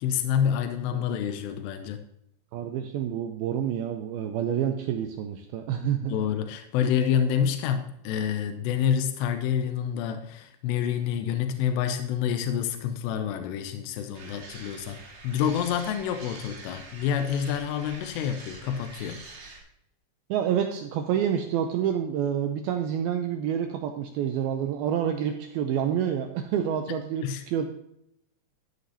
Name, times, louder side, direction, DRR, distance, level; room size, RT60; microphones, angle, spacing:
voice 1, 0.0-2.0 6.1-19.2 27.2-27.4, left 8 dB, 85° left, 7 dB, 2.8 m, -28 dB
voice 2, 2.5-6.2 20.3-27.7, right 9 dB, 90° right, 5 dB, 2.2 m, -28 dB
sound 1, 14.1-19.6, right 3 dB, 45° right, 2.2 m, -45 dB
13.0 x 9.4 x 2.8 m, 0.77 s
omnidirectional pair, 5.0 m